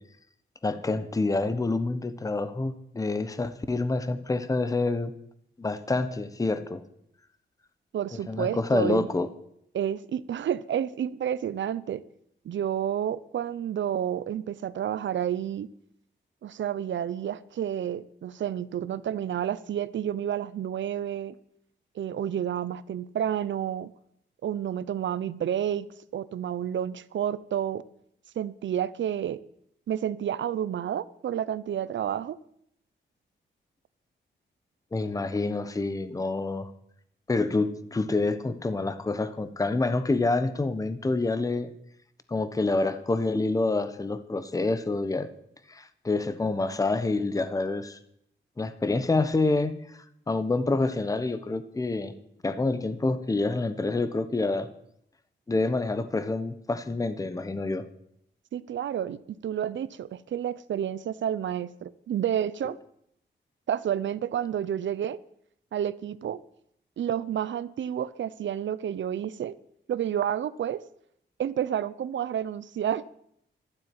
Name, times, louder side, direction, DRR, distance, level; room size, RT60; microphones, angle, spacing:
voice 1, 0.6-5.1 5.6-6.8 8.1-9.3 34.9-36.7 37.3-41.7 42.3-45.3 45.7-48.0 48.6-52.1 52.4-54.7 55.5-57.9, left 3 dB, 15° left, 1.0 m, -27 dB
voice 2, 7.9-9.1 9.7-12.0 12.4-15.7 16.4-21.3 21.9-23.9 24.4-25.9 26.1-27.8 28.4-29.4 29.9-32.4 58.5-62.8 63.7-65.2 65.7-66.4 67.0-69.5 69.9-70.8 71.4-73.1, right 10 dB, 75° right, 0.8 m, -30 dB
12.5 x 12.0 x 9.6 m
wide cardioid pair, 155°, 19 cm